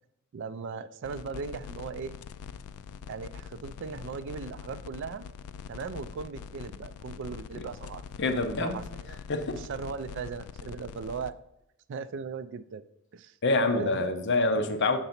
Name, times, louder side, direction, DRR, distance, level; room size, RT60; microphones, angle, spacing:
voice 1, 0.3-2.1 3.1-5.3 5.7-8.0 8.6-9.2 9.5-11.4 11.9-12.8 13.1-13.4 13.7-14.0, right 5 dB, 55° right, 14 dB, 0.3 m, -38 dB
sound 1, 1.0-11.3, left 7 dB, 75° left, 0.3 m, -43 dB
voice 2, 8.2-8.8 9.3-9.6 13.4-15.0, left 2 dB, 55° left, 7 dB, 0.7 m, -26 dB
6.6 x 4.0 x 5.7 m, 0.86 s
head